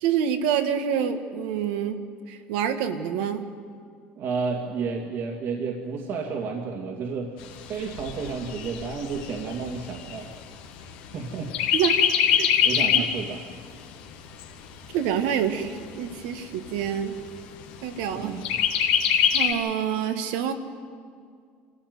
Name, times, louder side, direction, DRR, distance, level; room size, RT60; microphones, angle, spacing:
voice 1, 0.0-2.0 2.3-3.4 11.7-12.0 12.4-12.5 12.9-13.1 14.9-17.1 17.8-18.4 19.3-20.5, right 8 dB, 85° right, 7 dB, 1.9 m, -27 dB
voice 2, 4.2-7.4 7.7-10.3 11.1-11.7 12.6-13.4 18.1-18.5, right 5 dB, 60° right, 0 dB, 2.4 m, -31 dB
Chirp tweet, 7.4-11.1 11.5-13.2 13.6-13.7 14.1-15.1 15.7-15.8 16.1-16.2 16.7-17.2 18.4-19.5, left 8 dB, 90° left, 2.3 m, -24 dB
25.5 x 15.0 x 9.5 m, 2.1 s
supercardioid pair, 100°, 5 cm